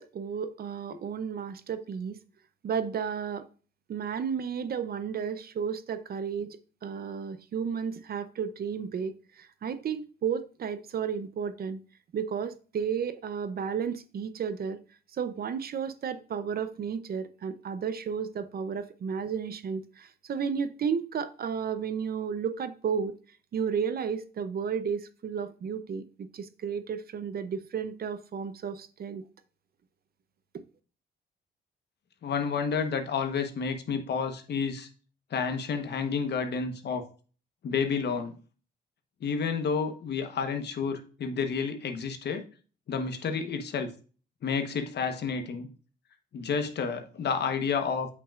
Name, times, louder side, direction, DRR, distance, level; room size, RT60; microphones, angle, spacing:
voice 1, 0.0-2.2 2.6-3.5 3.9-11.8 12.1-14.8 15.1-23.1 23.5-29.2 30.5-30.6, right 7 dB, 50° right, 0.7 m, -33 dB
voice 2, 32.2-34.9 35.3-37.0 37.6-38.3 39.2-42.4 42.9-43.9 44.4-45.7 46.3-48.1, left 5 dB, 60° left, 1.1 m, -30 dB
8.0 x 5.9 x 2.5 m
cardioid pair, 95°, 19 cm